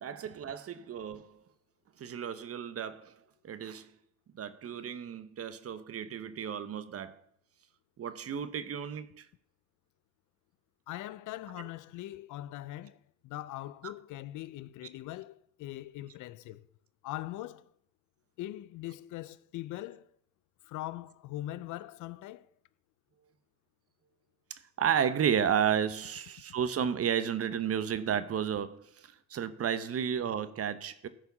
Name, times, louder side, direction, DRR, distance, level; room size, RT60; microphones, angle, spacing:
voice 1, 0.0-1.3 2.0-3.1 3.4-3.9 4.4-7.2 8.0-9.2 13.8-13.9 24.5-28.8 29.3-31.1, right 8 dB, 50° right, 0.9 m, -32 dB
voice 2, 10.9-13.0 13.2-16.7 17.0-17.7 18.4-20.1 20.6-22.5, left 15 dB, 85° left, 0.5 m, -41 dB
13.5 x 4.9 x 5.5 m
cardioid pair, 90°, 30 cm